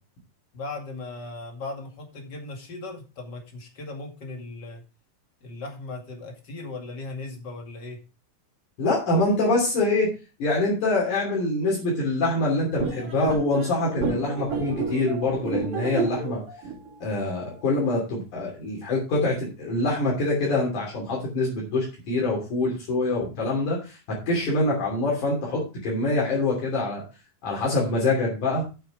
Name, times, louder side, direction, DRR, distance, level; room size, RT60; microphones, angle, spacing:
voice 1, 0.5-4.8 5.4-8.0, left 3 dB, 35° left, 2 dB, 2.4 m, -37 dB
voice 2, 8.8-10.1 10.4-16.4 17.0-27.0 27.4-28.6, left 2 dB, 70° left, -4 dB, 4.5 m, -25 dB
sound 1, 12.8-17.9, right 4 dB, 60° right, 3.7 m, -31 dB
9.3 x 6.9 x 4.9 m, 0.31 s
omnidirectional pair, 3.7 m